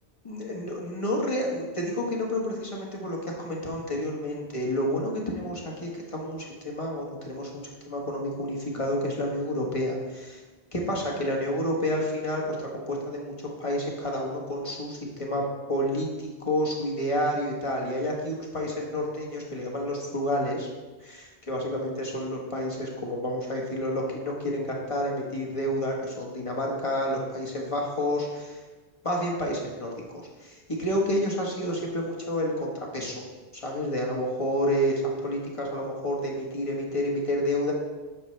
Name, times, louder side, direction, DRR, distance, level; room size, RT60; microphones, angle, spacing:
voice 1, 0.2-10.4 10.7-15.4 15.7-20.7 21.0-28.6 29.0-33.2 33.6-37.7, equal, 30° left, -1 dB, 1.4 m, -29 dB
9.2 x 6.6 x 3.3 m, 1.2 s
omnidirectional pair, 1.1 m